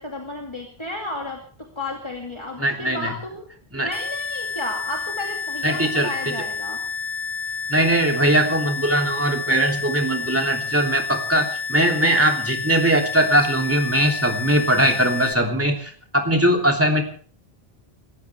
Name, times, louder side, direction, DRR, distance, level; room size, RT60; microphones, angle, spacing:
voice 1, 0.0-3.4 3.8-6.8, left 2 dB, 25° left, 0 dB, 2.5 m, -33 dB
voice 2, 2.6-3.1 3.7-3.9 5.6-6.3 7.7-17.0, right 1 dB, 15° right, 2 dB, 3.1 m, -20 dB
sound 1, 3.9-15.3, left 5 dB, 80° left, 2.3 m, -30 dB
28.0 x 14.5 x 3.5 m, 0.43 s
omnidirectional pair, 1.0 m